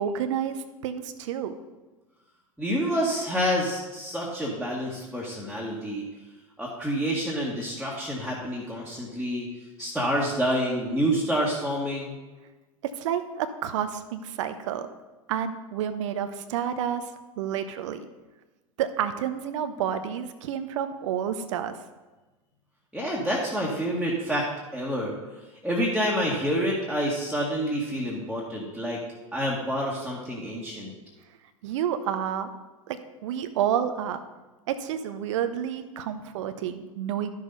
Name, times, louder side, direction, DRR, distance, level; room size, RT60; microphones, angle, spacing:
voice 1, 0.0-1.5 13.0-14.9 15.3-17.1 17.4-18.0 18.8-21.8 31.6-32.5 32.9-34.2 34.7-37.3, right 9 dB, 60° right, 9 dB, 0.8 m, -29 dB
voice 2, 2.6-6.0 6.6-9.5 9.8-12.2 22.9-24.5 24.7-25.2 25.6-29.0 29.3-30.9, equal, ahead, -5 dB, 1.7 m, -28 dB
12.0 x 6.5 x 4.0 m, 1.2 s
figure-of-eight pair, 90°, 18 cm